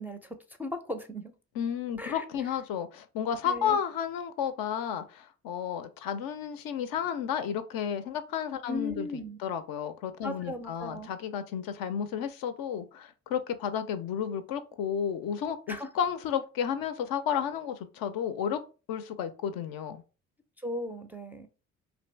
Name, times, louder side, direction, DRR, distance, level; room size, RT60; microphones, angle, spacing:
voice 1, 0.0-1.3 2.0-2.2 3.4-3.8 8.7-9.4 10.2-11.1 15.7-15.9 20.6-21.5, left 1 dB, 5° right, 0.4 m, -37 dB
voice 2, 1.6-18.6 18.9-20.0, left 8 dB, 60° left, 0.5 m, -32 dB
2.6 x 2.5 x 3.2 m
hypercardioid pair, 45°, 41 cm